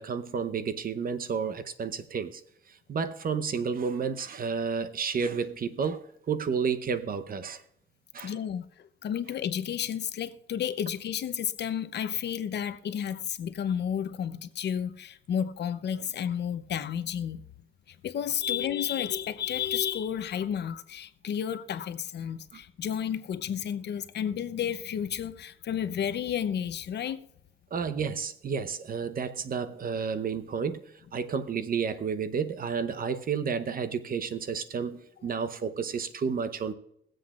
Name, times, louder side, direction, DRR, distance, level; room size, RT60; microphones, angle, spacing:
voice 1, 0.0-2.4 2.9-7.6 8.1-8.3 27.7-30.8 31.1-36.7, right 6 dB, 45° right, 0.8 m, -31 dB
voice 2, 8.2-17.4 17.9-27.2, left 9 dB, 60° left, 0.7 m, -32 dB
22.5 x 7.7 x 2.4 m
cardioid pair, 90°, 20 cm